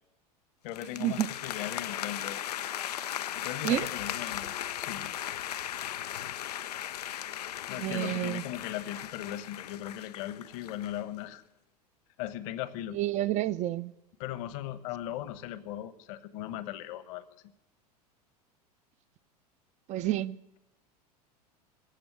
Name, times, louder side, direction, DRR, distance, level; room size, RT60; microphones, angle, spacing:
voice 1, 0.6-2.4 3.3-5.1 7.7-11.4 12.2-13.0 14.2-17.2, left 12 dB, 55° left, 1.2 m, -38 dB
sound 1, 0.7-11.0, left 11 dB, 75° left, 0.5 m, -37 dB
voice 2, 7.8-8.4 12.9-13.9 19.9-20.4, right 13 dB, 35° right, 0.6 m, -29 dB
20.5 x 7.8 x 8.9 m
figure-of-eight pair, 85°, 20 cm